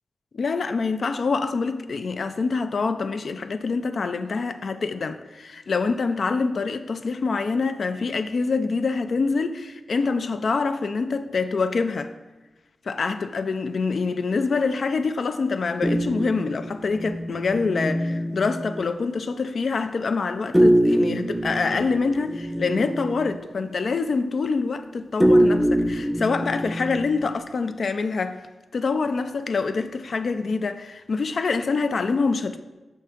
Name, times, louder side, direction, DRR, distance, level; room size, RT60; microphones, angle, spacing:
voice 1, 0.3-12.1 12.9-28.4 28.7-32.6, left 4 dB, 65° left, 0.3 m, -25 dB
sound 1, 15.8-18.9 20.5-23.5 25.2-27.4, equal, 5° right, 0.4 m, -23 dB
5.6 x 3.6 x 5.8 m
wide cardioid pair, 85°, 0 cm